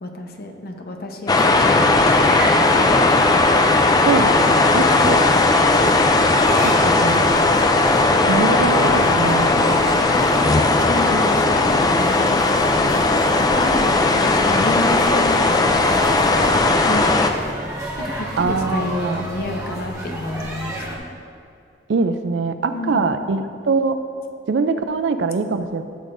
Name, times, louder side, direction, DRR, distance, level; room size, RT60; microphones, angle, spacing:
voice 1, 0.0-3.0 4.9-5.2 10.0-13.0 13.4-17.5 18.0-21.0 22.7-23.0, left 1 dB, 55° left, 3 dB, 0.8 m, -30 dB
sound 1, 1.3-17.3, left 2 dB, 20° left, 0.4 m, -17 dB
sound 2, 2.0-21.0, right 1 dB, 20° right, 1.2 m, -32 dB
voice 2, 4.0-5.2 6.6-7.6 8.3-9.8 18.4-19.3 21.9-24.0 24.5-25.8, right 4 dB, 70° right, 9 dB, 0.4 m, -23 dB
12.0 x 6.5 x 2.6 m, 2.4 s
head